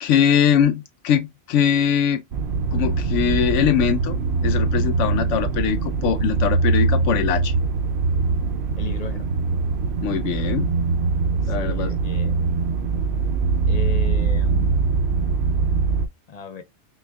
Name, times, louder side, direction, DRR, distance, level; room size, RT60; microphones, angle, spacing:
voice 1, 0.0-2.2 2.7-7.6 10.0-10.7 11.4-11.9, left 8 dB, 85° left, 0.9 m, -22 dB
sound 1, 2.3-16.1, right 4 dB, 65° right, 0.8 m, -22 dB
voice 2, 8.8-9.3 11.4-12.4 13.7-14.8 16.3-16.6, left 6 dB, 45° left, 0.5 m, -36 dB
5.5 x 2.3 x 2.3 m
omnidirectional pair, 1.2 m